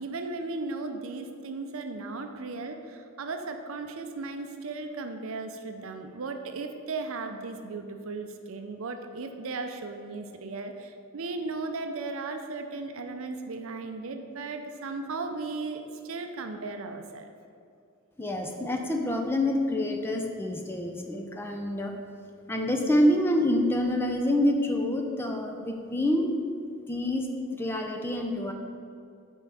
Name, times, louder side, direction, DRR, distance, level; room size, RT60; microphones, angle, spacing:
voice 1, 0.0-17.3, right 3 dB, 65° right, 6 dB, 0.5 m, -36 dB
voice 2, 18.2-21.9 22.5-26.4 26.9-27.3 27.5-28.5, left 1 dB, 10° left, 3 dB, 0.5 m, -27 dB
5.4 x 4.5 x 6.2 m, 2.4 s
head